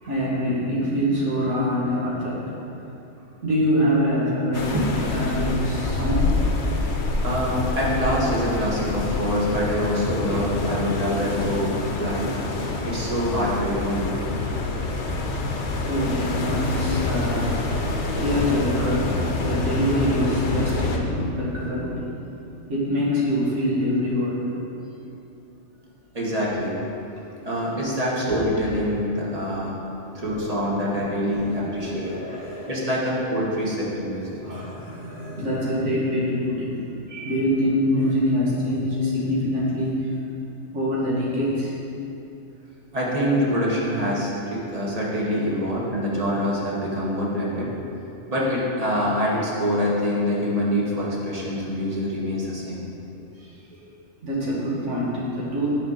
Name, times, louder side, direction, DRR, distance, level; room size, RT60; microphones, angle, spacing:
voice 1, 0.0-2.4 3.4-4.7 5.1-6.3 15.9-17.5 18.2-21.9 22.7-24.4 30.1-30.2 31.1-32.7 34.4-36.7 37.1-40.0 40.7-41.7 53.4-53.5 54.2-55.7, equal, 90° right, -7 dB, 2.2 m, -25 dB
sound 1, 4.5-21.0, left 3 dB, 75° left, 1.1 m, -26 dB
voice 2, 7.2-12.3 12.8-14.4 15.7-15.8 26.1-26.8 27.4-29.8 30.1-32.1 32.7-34.4 42.9-47.7 48.3-52.8, equal, 35° right, -5 dB, 1.4 m, -25 dB
9.1 x 5.4 x 4.0 m, 2.8 s
omnidirectional pair, 1.2 m